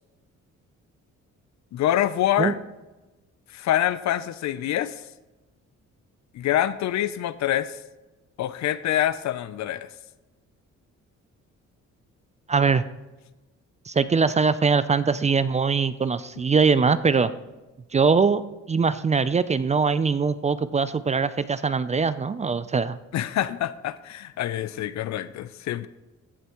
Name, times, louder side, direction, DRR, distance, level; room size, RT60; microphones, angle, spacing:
voice 1, 1.7-2.6 3.5-4.9 6.3-7.8 8.4-9.9 23.1-25.9, left 12 dB, 65° left, 0.5 m, -25 dB
voice 2, 12.5-12.8 13.9-17.3 17.9-18.4 18.7-23.0, right 5 dB, 25° right, 0.4 m, -22 dB
15.0 x 8.0 x 3.0 m
cardioid pair, 90°, 30 cm